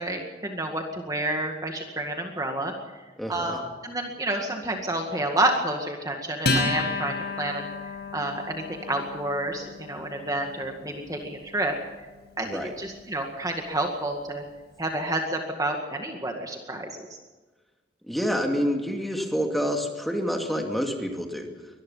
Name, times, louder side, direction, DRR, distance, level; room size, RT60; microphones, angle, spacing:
voice 1, 0.0-3.0 3.3-11.7 12.4-14.4 14.8-17.0, right 1 dB, 20° right, 3 dB, 2.0 m, -29 dB
voice 2, 3.2-3.6 12.4-12.7 18.1-21.5, equal, ahead, 2 dB, 2.5 m, -28 dB
Acoustic guitar, 6.4-13.3, left 2 dB, 65° left, 5.2 m, -32 dB
24.0 x 19.5 x 5.7 m, 1.2 s
head